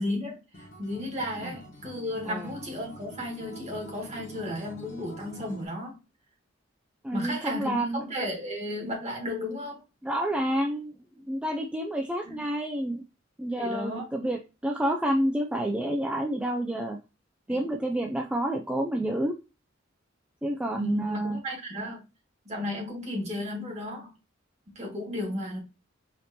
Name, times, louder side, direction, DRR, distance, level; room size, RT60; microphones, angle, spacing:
voice 1, 0.0-6.0 7.1-9.8 12.2-12.4 13.6-14.0 17.5-17.6 20.8-22.0 22.5-24.1 24.8-25.6, left 1 dB, 35° right, -1 dB, 1.8 m, -34 dB
Acoustic guitar, 0.5-5.7, right 1 dB, 45° left, 1.1 m, -46 dB
voice 2, 7.0-8.0 10.0-10.9 11.3-13.0 13.4-17.0 17.5-19.3 20.4-21.4, right 1 dB, 5° right, 1 dB, 0.3 m, -29 dB
5.0 x 2.9 x 2.7 m, 0.29 s
head